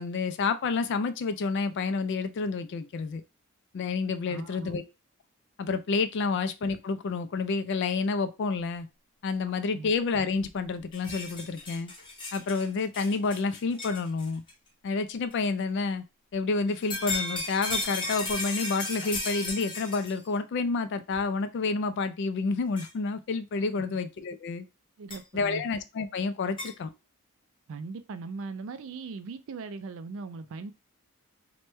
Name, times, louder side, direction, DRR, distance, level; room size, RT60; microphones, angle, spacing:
voice 1, 0.0-3.2 3.7-4.8 5.6-8.9 9.2-11.9 12.3-14.4 14.8-16.0 16.3-24.7 25.3-26.9, left 4 dB, 50° left, 0.3 m, -29 dB
voice 2, 4.3-4.8 9.7-9.9 23.8-23.9 25.0-25.6 27.7-30.7, right 4 dB, 60° right, 0.4 m, -39 dB
sound 1, 10.4-10.5 10.8-14.5 15.3-15.4 16.7-20.3 21.1-21.2 22.8-22.9 25.1-25.2 26.6-26.7, left 2 dB, 20° left, 0.8 m, -35 dB
3.0 x 2.2 x 3.0 m
head